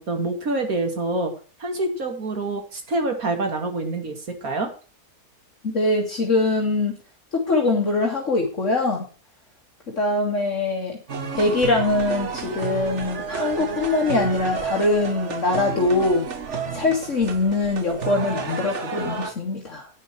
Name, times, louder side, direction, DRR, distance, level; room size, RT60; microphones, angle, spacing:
voice 1, 0.0-1.3 1.6-4.2 4.4-4.7, right 2 dB, 70° right, 5 dB, 2.8 m, -26 dB
voice 2, 5.6-6.9 7.3-9.0 9.9-11.0 11.4-16.3 16.7-19.9, left 2 dB, 55° left, 0 dB, 2.4 m, -22 dB
sound 1, 11.1-19.3, right 5 dB, 50° right, 1.7 m, -31 dB
10.5 x 9.6 x 4.5 m, 0.36 s
omnidirectional pair, 1.6 m